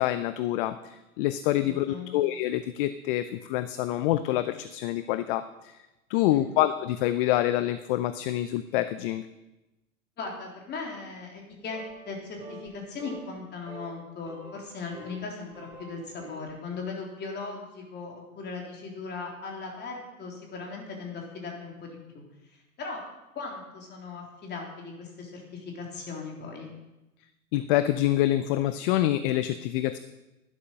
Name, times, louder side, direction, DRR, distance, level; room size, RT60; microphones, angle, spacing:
voice 1, 0.0-5.7 6.1-9.3 27.5-30.0, left 14 dB, 40° left, 12 dB, 0.6 m, -26 dB
voice 2, 1.5-2.1 6.1-6.5 10.2-22.2 22.8-23.0 23.3-26.7, left 4 dB, 25° left, 0 dB, 3.5 m, -38 dB
sound 1, 11.7-12.2 12.4-12.7 13.0-13.4 13.7-13.9 14.3-15.2 15.5-16.5, right 1 dB, 10° right, 3.9 m, -45 dB
12.0 x 11.5 x 5.6 m, 1.0 s
hypercardioid pair, 115°, 43 cm